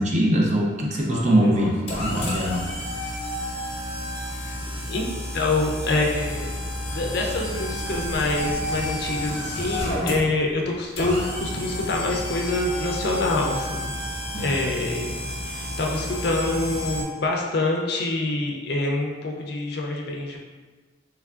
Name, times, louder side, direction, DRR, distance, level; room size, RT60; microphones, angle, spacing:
voice 1, 0.0-1.7 2.0-2.7 14.3-14.5, right 1 dB, 35° right, -2 dB, 0.5 m, -22 dB
sound 1, 1.1-17.0, equal, 35° left, 0.9 m, -31 dB
voice 2, 5.3-6.6 6.9-13.9 14.4-15.1 15.4-20.4, left 2 dB, 55° left, 0 dB, 0.5 m, -26 dB
3.4 x 3.2 x 2.4 m, 1.3 s
head